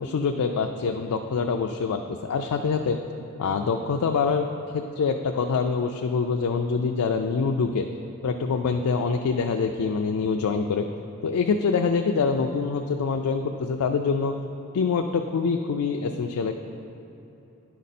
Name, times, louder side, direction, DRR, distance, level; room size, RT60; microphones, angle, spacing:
voice 1, 0.0-3.0 3.4-4.5 4.7-7.9 8.2-10.9 11.2-14.3 14.7-16.5, left 5 dB, 80° left, 4 dB, 0.4 m, -25 dB
10.5 x 5.1 x 4.2 m, 3.0 s
head